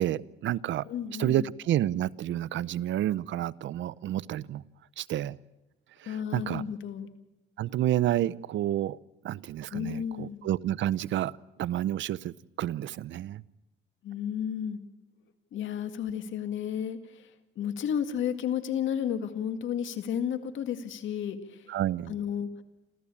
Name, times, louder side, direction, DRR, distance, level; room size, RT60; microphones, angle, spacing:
voice 1, 0.0-0.8 1.2-4.6 5.0-5.4 6.0-6.6 7.6-9.0 9.2-11.3 11.6-13.4 21.7-22.1, right 12 dB, 70° right, 20 dB, 0.7 m, -29 dB
voice 2, 0.9-1.5 6.1-7.1 9.7-10.5 14.0-14.8 15.5-21.7 22.1-22.5, left 9 dB, 75° left, 9 dB, 2.1 m, -32 dB
29.0 x 14.0 x 8.5 m, 1.0 s
cardioid pair, 90°, 20 cm